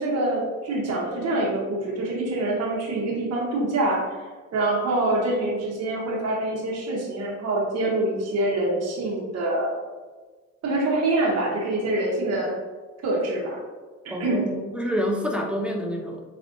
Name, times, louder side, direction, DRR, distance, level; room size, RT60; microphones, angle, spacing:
voice 1, 0.0-4.2 4.5-9.8 10.6-12.5 13.0-13.6 14.0-14.5, right 2 dB, 55° right, -3 dB, 1.0 m, -25 dB
voice 2, 14.1-16.2, equal, 5° right, 1 dB, 0.6 m, -28 dB
4.2 x 3.3 x 2.6 m, 1.4 s
cardioid pair, 90°, 30 cm